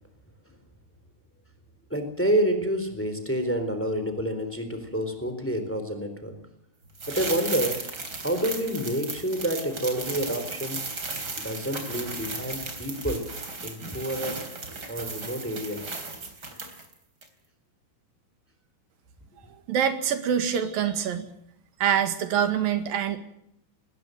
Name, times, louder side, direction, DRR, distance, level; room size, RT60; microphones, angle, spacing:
voice 1, 1.9-6.4 7.1-7.8 8.2-10.8 11.4-13.3 13.6-14.4 14.9-16.0, right 1 dB, 5° left, 8 dB, 3.5 m, -28 dB
sound 1, 7.0-16.9 17.2-17.3, right 3 dB, 30° right, 3.8 m, -35 dB
voice 2, 19.7-21.3 21.8-23.2, right 8 dB, 85° right, 8 dB, 3.6 m, -25 dB
21.0 x 19.5 x 7.8 m, 0.78 s
omnidirectional pair, 4.0 m